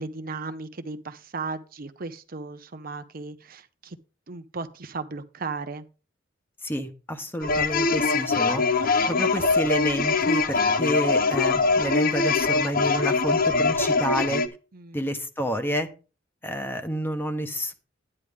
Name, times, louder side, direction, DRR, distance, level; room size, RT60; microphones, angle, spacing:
voice 1, 0.0-4.0 4.3-5.8 14.7-15.0, right 3 dB, 50° right, 9 dB, 0.8 m, -36 dB
voice 2, 6.6-14.4 14.9-15.9 16.4-17.7, equal, 10° left, 8 dB, 1.1 m, -29 dB
sound 1, 7.4-14.5, left 4 dB, 50° left, 0.8 m, -23 dB
11.0 x 9.8 x 3.6 m, 0.34 s
head